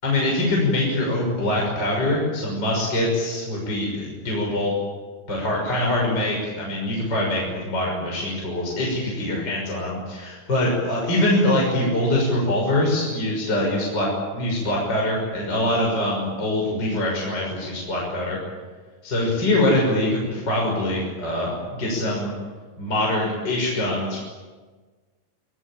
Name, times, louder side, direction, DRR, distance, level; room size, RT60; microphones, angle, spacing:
voice 1, 0.0-4.7 5.3-14.1 14.3-18.4 19.0-22.3 22.8-24.2, left 1 dB, 25° left, -2 dB, 6.7 m, -23 dB
29.0 x 19.5 x 9.1 m, 1.4 s
omnidirectional pair, 4.4 m